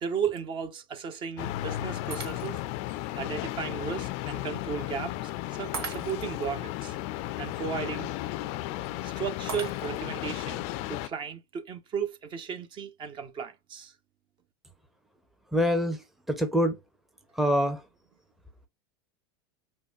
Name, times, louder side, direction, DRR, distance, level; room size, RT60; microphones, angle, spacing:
voice 1, 0.0-2.6 2.9-5.3 5.6-8.1 9.0-13.9, right 7 dB, 40° right, 1.1 m, -35 dB
sound 1, 1.4-11.1, left 15 dB, 55° left, 0.5 m, -34 dB
Shatter, 2.1-2.8 3.4-3.5 5.7-6.5 9.5-10.2, right 5 dB, 80° right, 1.4 m, -39 dB
voice 2, 15.5-16.0 16.3-16.8 17.4-17.8, equal, ahead, 0.8 m, -24 dB
5.3 x 2.2 x 2.5 m
hypercardioid pair, 95°, 13 cm